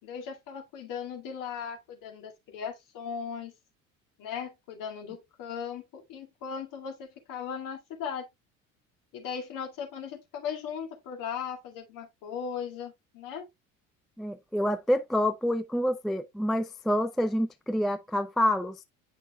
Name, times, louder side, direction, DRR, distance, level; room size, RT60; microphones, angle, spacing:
voice 1, 0.0-3.5 4.2-8.2 9.1-13.5, left 7 dB, 50° left, 2.2 m, -38 dB
voice 2, 14.2-18.8, equal, ahead, 0.3 m, -27 dB
8.8 x 5.7 x 2.2 m
figure-of-eight pair, 60°, 40 cm